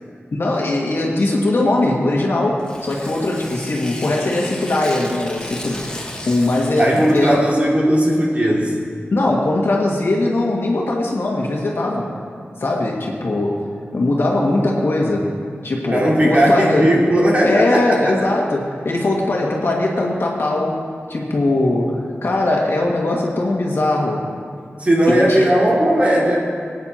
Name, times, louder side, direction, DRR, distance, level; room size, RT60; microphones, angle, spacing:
voice 1, 0.3-7.5 9.1-12.2 12.6-13.6 13.9-15.3 15.6-16.9 17.4-20.8 21.1-24.3 25.1-25.5, left 2 dB, 65° left, -2 dB, 1.9 m, -20 dB
Tearing, 2.6-7.4, left 1 dB, 20° left, 1.4 m, -35 dB
voice 2, 6.8-8.8 15.9-18.2 24.8-26.4, right 1 dB, 35° right, -4 dB, 2.4 m, -16 dB
20.0 x 9.4 x 2.9 m, 2.1 s
wide cardioid pair, 90°, 4 cm